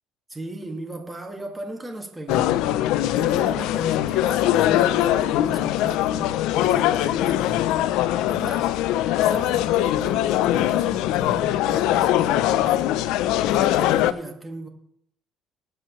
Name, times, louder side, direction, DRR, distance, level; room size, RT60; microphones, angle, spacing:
voice 1, 0.3-2.6 3.1-7.9 8.3-8.8 9.2-13.0 13.5-14.7, right 2 dB, 10° right, 1.8 m, -36 dB
sound 1, 2.3-14.1, left 13 dB, 80° left, 0.4 m, -21 dB
19.0 x 7.8 x 3.1 m
cardioid pair, 125°, 0 cm